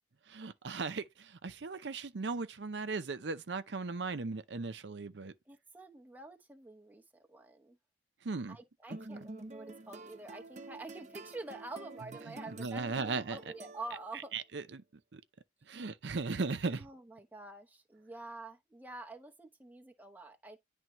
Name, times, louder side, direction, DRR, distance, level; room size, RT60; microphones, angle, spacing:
voice 1, 0.3-5.3 8.2-8.6 8.9-9.0 12.3-13.4 14.3-14.8 15.1-15.2 15.7-16.9, right 4 dB, 75° right, 0.6 m, -37 dB
voice 2, 5.5-7.0 7.3-7.8 8.5-14.3 16.7-20.6, right 2 dB, 10° right, 0.8 m, -47 dB
sound 1, 8.9-14.3, right 2 dB, 40° right, 0.7 m, -49 dB
10.5 x 3.5 x 3.0 m
head